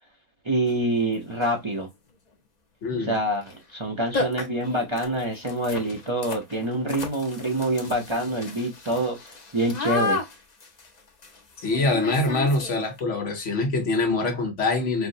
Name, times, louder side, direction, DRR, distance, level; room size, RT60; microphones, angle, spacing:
voice 1, 0.4-1.9 3.0-10.2, right 1 dB, 40° right, 0.4 m, -26 dB
sound 1, 0.7-0.8 1.3-1.7 3.4-3.6 3.8-3.9 4.1-13.0, left 3 dB, 40° left, 0.7 m, -33 dB
voice 2, 2.8-3.1 11.6-15.1, left 2 dB, 60° left, 1.2 m, -24 dB
4.2 x 2.0 x 2.6 m
omnidirectional pair, 1.5 m